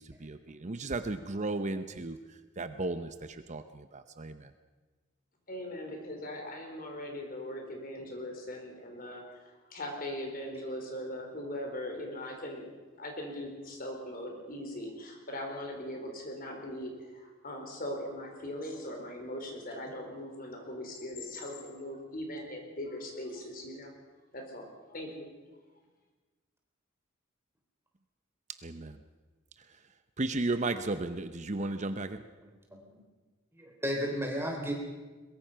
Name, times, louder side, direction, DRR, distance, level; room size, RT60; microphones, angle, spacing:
voice 1, 0.0-4.5 28.6-29.0 29.6-29.8 30.2-32.2, right 2 dB, 35° right, 10 dB, 0.8 m, -35 dB
voice 2, 5.5-12.7 13.0-23.9 24.3-25.3, left 1 dB, 45° left, 2 dB, 4.5 m, -40 dB
voice 3, 32.7-33.0 33.5-34.7, equal, 10° right, 1 dB, 3.6 m, -34 dB
22.0 x 22.0 x 5.7 m, 1.3 s
head